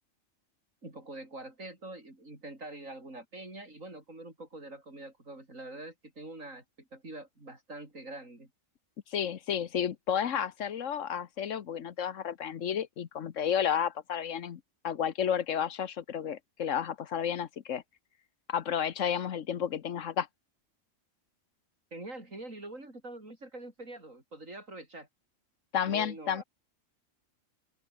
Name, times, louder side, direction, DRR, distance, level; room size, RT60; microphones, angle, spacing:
voice 1, 0.8-8.5 21.9-25.1 25.8-26.4, right 2 dB, 80° right, 6.8 m, -45 dB
voice 2, 9.1-17.8 18.5-20.3 25.7-26.4, left 8 dB, 70° left, 1.3 m, -32 dB
open air
omnidirectional pair, 1.4 m